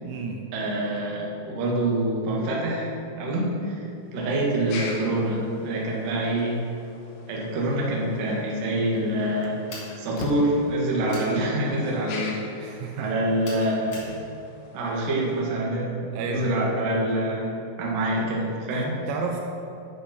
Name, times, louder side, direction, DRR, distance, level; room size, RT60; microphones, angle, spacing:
voice 1, 0.0-0.5 12.6-13.1 16.1-16.5 18.7-19.4, right 5 dB, 85° right, 2 dB, 3.1 m, -32 dB
voice 2, 0.5-3.9 4.1-6.6 7.3-9.6 10.0-12.7 13.0-14.2 14.7-17.4 17.8-19.0, right 1 dB, 60° right, -3 dB, 2.5 m, -26 dB
sound 1, 3.9-15.4, left 3 dB, 70° left, 2.9 m, -44 dB
Slam, 8.8-9.0 9.4-11.3, left 5 dB, 85° left, 2.4 m, -40 dB
sound 2, 9.7-10.0 11.1-11.3 13.4-14.1, left 2 dB, 45° left, 2.8 m, -40 dB
9.6 x 6.4 x 5.8 m, 2.6 s
omnidirectional pair, 5.7 m